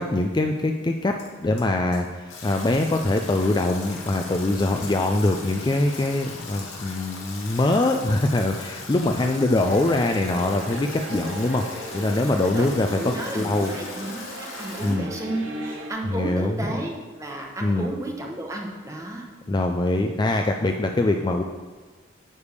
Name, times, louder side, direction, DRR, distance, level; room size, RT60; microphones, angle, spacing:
voice 1, 0.0-13.7 14.8-15.1 16.0-16.5 17.6-17.9 19.5-21.4, left 2 dB, 20° left, 4 dB, 0.3 m, -23 dB
sound 1, 1.2-1.7 1.9-2.2 3.2-3.3 3.7-5.3 5.9-6.0 6.3-6.8 7.3-7.9 8.2-8.8, left 6 dB, 55° left, 1.8 m, -47 dB
Stream / Drip / Trickle dribble, 2.3-14.9, left 3 dB, 85° left, 1.9 m, -39 dB
sound 2, 9.6-15.9, right 1 dB, 80° right, 1.3 m, -37 dB
voice 2, 12.9-19.2, right 1 dB, 15° right, 0 dB, 1.0 m, -32 dB
9.5 x 3.5 x 6.7 m, 1.4 s
head